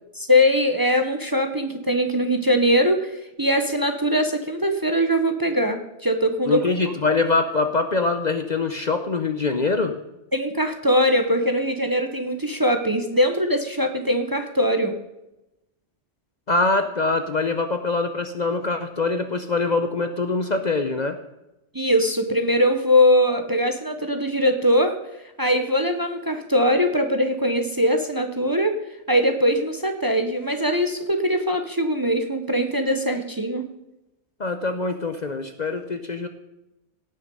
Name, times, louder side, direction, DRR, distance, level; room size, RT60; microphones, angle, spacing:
voice 1, 0.2-6.6 10.3-14.9 21.7-25.0 25.4-28.8 29.1-33.7, equal, 20° right, 5 dB, 0.9 m, -21 dB
voice 2, 6.5-10.0 16.5-21.2 34.4-36.3, left 3 dB, 45° left, 7 dB, 0.8 m, -24 dB
17.5 x 6.4 x 5.4 m, 0.92 s
omnidirectional pair, 1.2 m